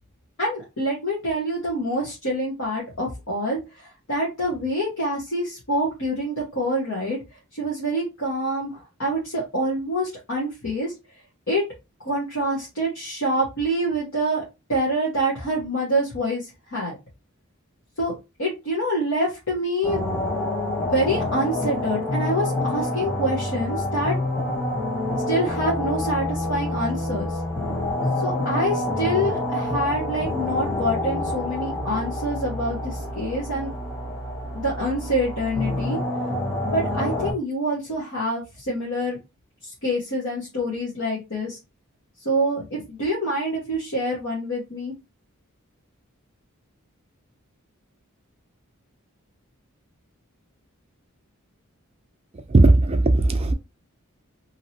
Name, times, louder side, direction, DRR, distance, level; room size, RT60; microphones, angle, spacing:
voice 1, 0.4-7.2 7.5-10.9 11.5-11.6 12.0-14.4 14.7-16.9 18.0-18.1 18.4-20.0 20.8-24.1 25.3-27.4 28.2-33.7 34.5-36.0 36.7-39.2 39.6-41.6 42.2-44.9, equal, 65° left, 1.1 m, -26 dB
sound 1, 19.8-37.3, left 1 dB, 10° left, 1.1 m, -27 dB
voice 2, 52.5-53.5, right 2 dB, 30° right, 0.4 m, -16 dB
2.9 x 2.8 x 2.7 m
head